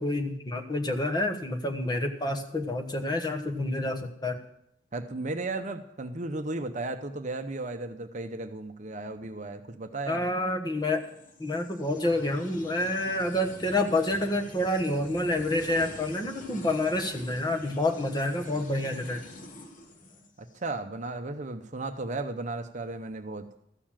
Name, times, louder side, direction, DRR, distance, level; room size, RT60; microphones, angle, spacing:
voice 1, 0.0-4.4 10.1-11.0 11.4-19.2, left 1 dB, 20° left, 4 dB, 1.2 m, -28 dB
voice 2, 4.9-10.3 20.4-23.5, right 2 dB, 40° right, 7 dB, 0.8 m, -35 dB
sound 1, 10.9-20.6, left 1 dB, 45° left, 1.3 m, -46 dB
14.0 x 6.9 x 7.4 m, 0.76 s
head